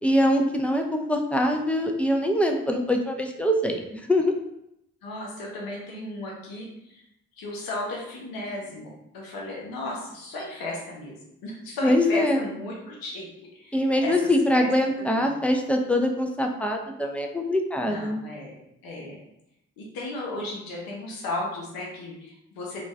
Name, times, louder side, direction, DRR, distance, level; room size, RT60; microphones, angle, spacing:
voice 1, 0.0-4.3 11.8-12.4 13.7-18.2, left 1 dB, 5° left, 3 dB, 0.4 m, -23 dB
voice 2, 5.0-7.0 7.4-11.1 11.4-13.3 13.5-14.7 15.0-15.3 17.8-18.6 18.8-19.2 19.8-22.9, left 2 dB, 80° left, -2 dB, 0.8 m, -35 dB
2.5 x 2.3 x 3.2 m, 0.81 s
supercardioid pair, 45°, 34 cm